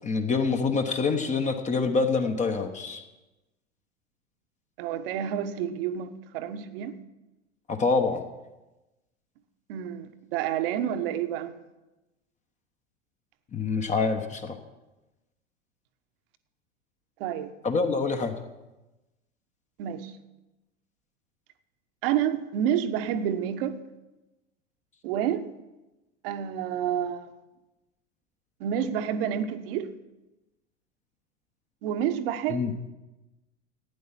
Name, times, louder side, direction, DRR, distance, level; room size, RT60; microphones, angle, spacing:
voice 1, 0.0-3.0 7.7-8.2 13.5-14.6 17.6-18.3 32.5-32.7, left 4 dB, 20° left, 6 dB, 1.1 m, -26 dB
voice 2, 4.8-7.0 9.7-11.5 17.2-17.5 19.8-20.1 22.0-23.8 25.0-25.4 26.2-27.3 28.6-29.9 31.8-32.6, right 9 dB, 50° right, 10 dB, 1.2 m, -29 dB
15.5 x 9.5 x 5.8 m, 1.0 s
figure-of-eight pair, 85°, 37 cm